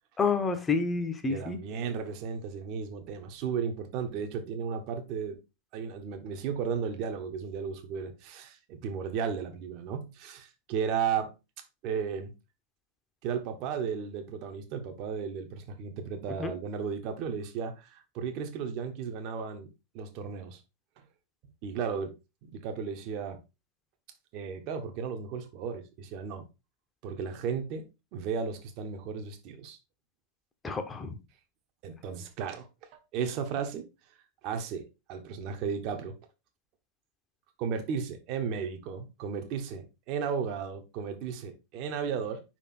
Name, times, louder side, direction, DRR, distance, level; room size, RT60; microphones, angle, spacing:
voice 1, 0.2-1.6 16.4-16.5 30.6-31.2, left 4 dB, 15° left, 1.1 m, -29 dB
voice 2, 1.3-5.4 5.7-11.3 11.8-12.3 13.2-20.6 21.6-22.1 22.4-23.4 24.3-26.4 27.0-29.8 31.8-33.9 34.4-36.1 37.6-42.4, right 6 dB, 40° right, 1.2 m, -34 dB
5.4 x 4.6 x 4.2 m
figure-of-eight pair, 90°, 0 cm